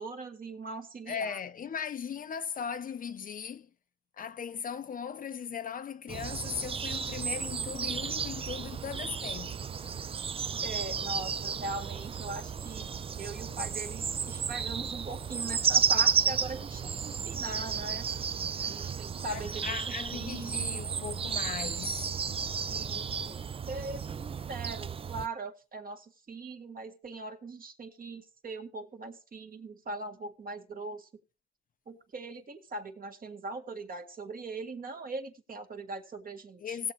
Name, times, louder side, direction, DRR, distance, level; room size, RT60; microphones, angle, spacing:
voice 1, 0.0-1.4 10.6-12.9 13.2-18.1 18.7-20.8 22.7-31.1 31.9-36.8, right 3 dB, 45° right, 1.9 m, -41 dB
voice 2, 1.1-3.7 4.2-9.6 19.3-22.1 36.6-36.9, left 7 dB, 45° left, 0.6 m, -38 dB
sound 1, 6.1-25.3, right 6 dB, 30° right, 0.4 m, -33 dB
18.0 x 7.3 x 3.1 m
cardioid pair, 90°, 20 cm